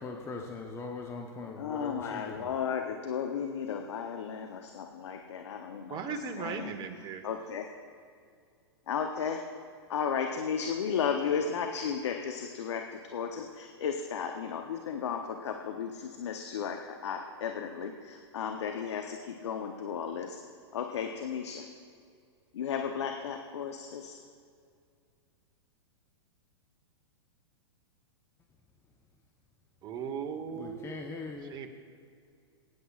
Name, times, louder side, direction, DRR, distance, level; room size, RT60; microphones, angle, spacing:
voice 1, 0.0-2.5 30.5-31.5, left 3 dB, 20° left, 2 dB, 0.9 m, -41 dB
voice 2, 1.6-6.0 6.4-6.7 7.2-7.7 8.9-9.4 9.9-20.4 20.7-21.7 22.5-24.2, left 7 dB, 75° left, 4 dB, 0.9 m, -34 dB
voice 3, 5.9-7.2 29.8-31.0 31.4-31.7, right 6 dB, 30° right, 6 dB, 1.2 m, -37 dB
22.0 x 9.7 x 2.4 m, 2.3 s
hypercardioid pair, 120°, 14 cm